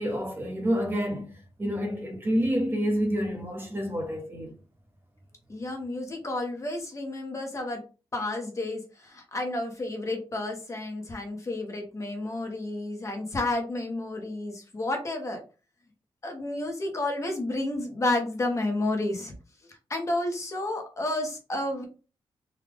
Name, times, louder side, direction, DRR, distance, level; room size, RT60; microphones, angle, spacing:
voice 1, 0.0-4.6, equal, 20° right, 0.9 m, -28 dB
voice 2, 5.5-7.8 8.1-15.4 16.2-19.3 19.7-21.8, left 2 dB, 30° left, 0.9 m, -31 dB
3.7 x 2.3 x 3.4 m
wide cardioid pair, 150°, 10 cm